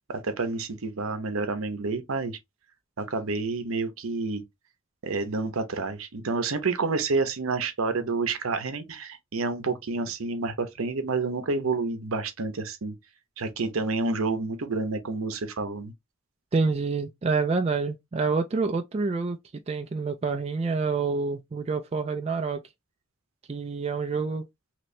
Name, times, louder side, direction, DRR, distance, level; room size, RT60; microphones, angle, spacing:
voice 1, 0.1-2.4 3.0-4.4 5.0-12.9 13.4-15.9, right 3 dB, 75° right, 0.7 m, -29 dB
voice 2, 16.5-19.4 19.7-22.6 23.5-24.4, right 4 dB, 30° right, 0.3 m, -27 dB
2.9 x 2.7 x 3.1 m
head